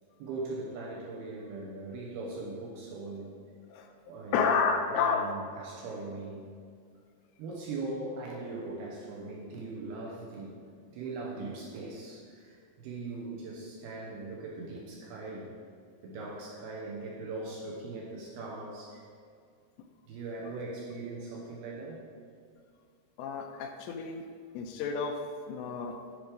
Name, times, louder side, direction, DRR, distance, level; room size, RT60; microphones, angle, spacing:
voice 1, 0.2-3.4 4.1-4.5 4.9-6.4 7.4-10.6 10.9-15.5 16.0-19.1 20.1-22.0, right 3 dB, 75° right, -3 dB, 2.5 m, -40 dB
voice 2, 4.3-5.3 23.2-24.2 24.5-25.2 25.5-26.0, left 5 dB, 85° left, 4 dB, 2.7 m, -30 dB
10.5 x 4.9 x 5.1 m, 2.2 s
omnidirectional pair, 5.3 m